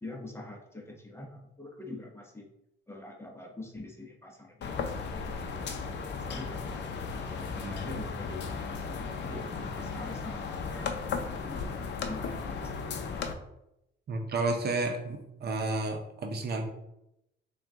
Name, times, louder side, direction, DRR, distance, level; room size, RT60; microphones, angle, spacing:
voice 1, 0.0-2.5 2.9-6.9 7.2-13.3, left 2 dB, 10° left, 0 dB, 0.9 m, -45 dB
sound 1, 4.6-13.3, left 5 dB, 60° left, 0.6 m, -35 dB
voice 2, 14.1-16.6, right 2 dB, 55° right, 4 dB, 0.7 m, -31 dB
5.9 x 2.4 x 3.6 m, 0.84 s
cardioid pair, 90°, 20 cm